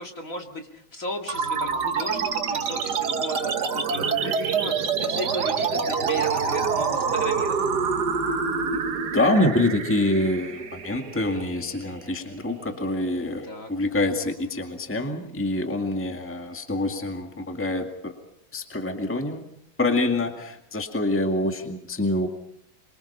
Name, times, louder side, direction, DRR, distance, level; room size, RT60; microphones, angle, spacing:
voice 1, 0.0-7.8 13.5-13.7, left 1 dB, 40° left, 4 dB, 2.6 m, -36 dB
sound 1, 1.3-12.2, right 6 dB, 55° right, 2.0 m, -26 dB
voice 2, 9.1-18.2 18.5-19.5 19.8-22.3, left 1 dB, 5° left, 5 dB, 2.0 m, -26 dB
26.0 x 24.0 x 5.6 m, 0.71 s
omnidirectional pair, 2.2 m